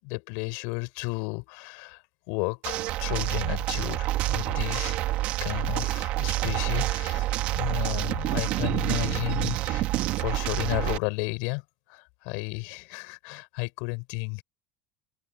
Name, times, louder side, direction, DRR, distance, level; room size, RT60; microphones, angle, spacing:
voice 1, 0.0-2.0 2.3-9.9 10.2-11.6 11.9-14.4, left 32 dB, 65° left, 6.6 m, -33 dB
sound 1, 2.6-11.0, right 16 dB, 50° right, 2.7 m, -28 dB
cardioid pair, 160°, 3 cm